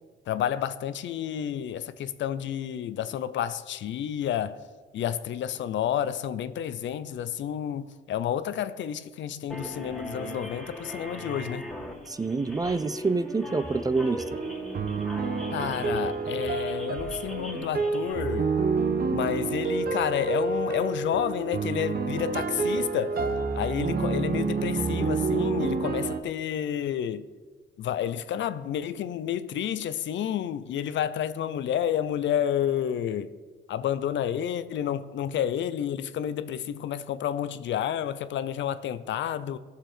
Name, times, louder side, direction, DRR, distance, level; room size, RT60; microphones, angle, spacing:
voice 1, 0.3-4.6 4.9-11.7 15.5-18.5 19.1-23.2 23.5-27.3 27.8-33.3 33.7-39.6, left 10 dB, 70° left, 0.6 m, -30 dB
sound 1, 9.5-18.1, equal, 5° left, 2.3 m, -40 dB
voice 2, 12.1-14.2, right 3 dB, 20° right, 0.4 m, -27 dB
sound 2, 14.1-26.2, right 4 dB, 50° right, 1.1 m, -28 dB
16.5 x 6.9 x 4.5 m
cardioid pair, 90°, 20 cm